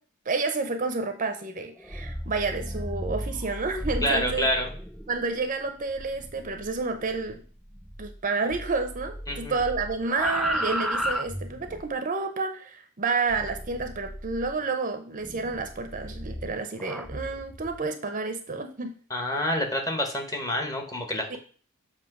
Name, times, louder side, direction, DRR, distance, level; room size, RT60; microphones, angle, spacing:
voice 1, 0.3-4.5 5.1-7.4 8.0-19.0 21.3-21.4, right 4 dB, 35° right, 7 dB, 0.7 m, -30 dB
sound 1, 1.8-8.2 8.5-11.9 13.3-14.6 15.2-17.8, equal, ahead, 0.3 m, -35 dB
voice 2, 4.0-4.7 9.3-9.6 19.1-21.4, equal, 15° left, 3 dB, 1.1 m, -27 dB
7.1 x 2.9 x 5.9 m, 0.42 s
head